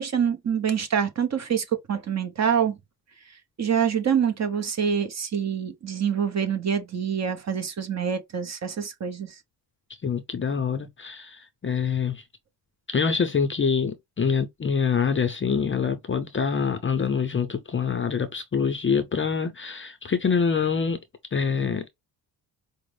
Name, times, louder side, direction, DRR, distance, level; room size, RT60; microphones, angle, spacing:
voice 1, 0.0-2.8 3.6-9.3, right 7 dB, 40° right, 0.8 m, -26 dB
voice 2, 10.0-12.2 12.9-21.0 21.3-21.9, left 6 dB, 30° left, 0.5 m, -25 dB
4.9 x 2.1 x 3.2 m
cardioid pair, 110°, 43 cm